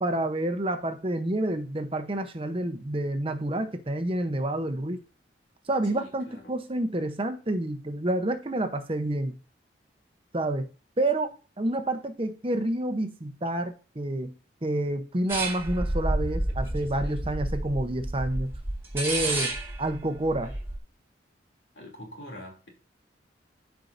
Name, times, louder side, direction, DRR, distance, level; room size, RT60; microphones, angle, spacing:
voice 1, 0.0-5.0 5.7-9.4 10.3-10.7 11.0-14.3 14.6-18.5 18.9-19.5 19.8-20.5, right 1 dB, 30° right, 0.8 m, -29 dB
voice 2, 5.9-6.5 21.7-22.7, left 1 dB, 75° left, 2.8 m, -44 dB
sound 1, 15.3-20.8, right 2 dB, 15° right, 1.7 m, -30 dB
13.5 x 4.6 x 2.6 m
head